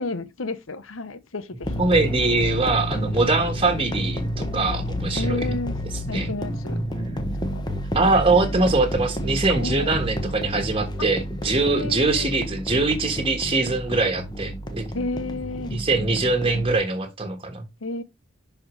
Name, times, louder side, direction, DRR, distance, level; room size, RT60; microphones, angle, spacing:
voice 1, 0.0-1.8 5.1-5.8 6.1-6.8 7.3-7.6 9.5-10.0 11.0-11.1 11.6-12.3 14.9-16.6 17.8-18.0, left 3 dB, 80° left, 1.0 m, -32 dB
sound 1, 1.6-16.8, equal, 20° left, 1.2 m, -30 dB
voice 2, 1.8-5.4 6.1-6.3 7.9-14.9 15.7-17.6, right 3 dB, 25° right, 1.4 m, -22 dB
11.0 x 4.4 x 3.2 m
head